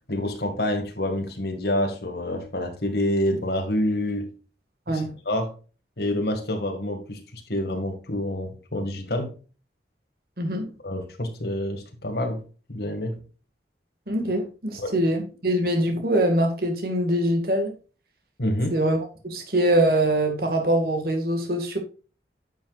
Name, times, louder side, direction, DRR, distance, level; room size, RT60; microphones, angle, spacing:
voice 1, 0.1-4.3 4.9-5.5 6.0-9.3 10.8-12.4 12.7-13.2 14.8-14.9 18.4-18.7, left 1 dB, 65° left, 4 dB, 2.1 m, -27 dB
voice 2, 10.4-10.7 14.1-17.7 18.7-19.0 19.2-21.8, right 1 dB, 55° right, 4 dB, 2.0 m, -23 dB
10.0 x 7.1 x 2.5 m, 0.36 s
head